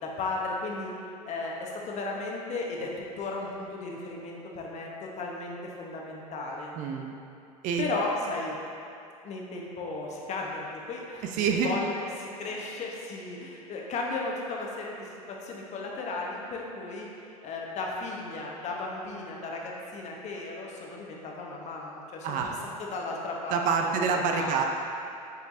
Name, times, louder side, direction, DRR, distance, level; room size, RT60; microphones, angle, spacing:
voice 1, 0.0-1.0 1.3-6.7 7.8-8.6 9.2-17.1 17.4-22.4 22.8-23.9 24.3-24.5, left 3 dB, 35° left, -1 dB, 1.1 m, -35 dB
voice 2, 6.7-7.2 7.6-7.8 11.2-11.8 22.2-22.6 23.5-24.6, right 6 dB, 45° right, 3 dB, 0.5 m, -27 dB
7.6 x 5.1 x 2.6 m, 2.6 s
figure-of-eight pair, 75°, 19 cm